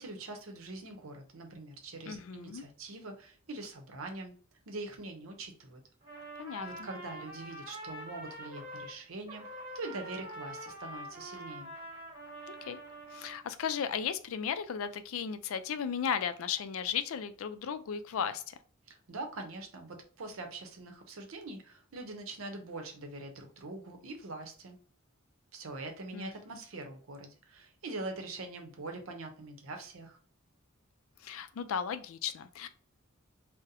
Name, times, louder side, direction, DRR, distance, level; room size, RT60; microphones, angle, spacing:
voice 1, 0.0-4.3 4.7-5.8 6.6-11.7 19.1-24.8 25.5-30.2, right 2 dB, 75° right, 4 dB, 0.7 m, -43 dB
voice 2, 2.1-2.6 6.4-6.9 12.5-12.8 13.1-18.5 26.1-26.3 31.2-32.7, left 7 dB, 75° left, 11 dB, 0.4 m, -35 dB
Trumpet, 6.0-9.0 9.3-13.4, right 1 dB, 30° right, 1.4 m, -45 dB
2.6 x 2.1 x 3.9 m, 0.44 s
head